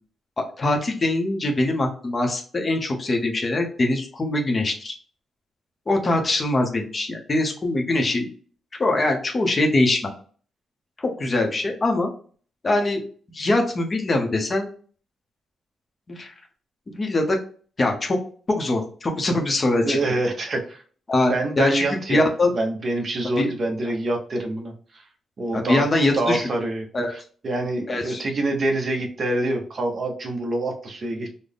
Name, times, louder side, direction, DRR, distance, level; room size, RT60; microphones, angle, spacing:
voice 1, 0.4-4.9 5.9-8.3 8.8-10.1 11.0-12.1 12.6-13.0 13.3-14.7 16.1-16.3 16.9-17.4 17.8-18.2 18.5-20.0 21.1-21.8 22.1-22.5 23.4-23.5 25.5-26.4 26.9-27.1 27.9-28.2, left 2 dB, 25° left, 3 dB, 0.6 m, -22 dB
voice 2, 19.9-20.8 21.3-22.2 22.5-25.0 25.4-25.8 26.1-31.3, right 2 dB, 35° right, 2 dB, 0.7 m, -26 dB
3.9 x 2.1 x 3.4 m, 0.43 s
wide cardioid pair, 165°, 0 cm